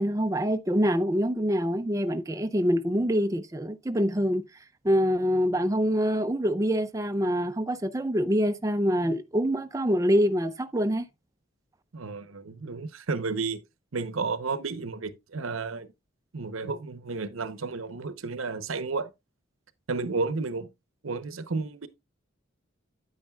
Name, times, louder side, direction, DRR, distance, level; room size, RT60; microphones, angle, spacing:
voice 1, 0.0-4.4 4.8-11.1, equal, 15° right, 0.4 m, -25 dB
voice 2, 11.9-13.6 13.9-15.9 16.3-19.1 19.9-20.7 21.0-21.9, right 4 dB, 90° right, 0.9 m, -32 dB
9.7 x 8.8 x 2.3 m
head